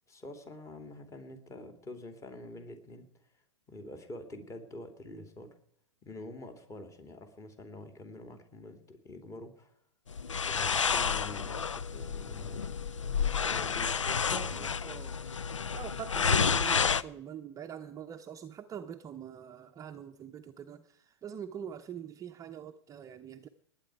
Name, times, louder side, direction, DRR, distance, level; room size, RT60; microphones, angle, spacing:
voice 1, 0.1-3.1 3.7-5.5 6.0-9.8 10.4-12.8 13.4-14.8, left 1 dB, 20° left, 2.9 m, -46 dB
sound 1, 10.1-17.0, left 6 dB, 90° left, 0.6 m, -30 dB
voice 2, 14.3-15.2 15.7-23.5, right 9 dB, 20° right, 0.7 m, -44 dB
19.5 x 9.2 x 4.8 m
hypercardioid pair, 110°, 15 cm